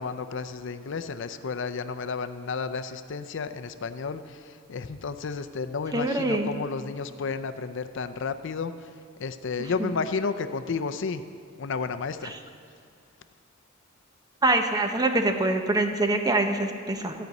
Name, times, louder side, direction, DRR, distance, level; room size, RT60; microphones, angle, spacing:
voice 1, 0.0-8.7 9.2-11.2 11.6-12.3, left 5 dB, 65° left, 10 dB, 0.5 m, -32 dB
voice 2, 5.9-6.5 9.8-9.9 14.4-17.1, right 2 dB, 20° right, 6 dB, 0.7 m, -24 dB
14.0 x 5.3 x 9.1 m, 2.3 s
head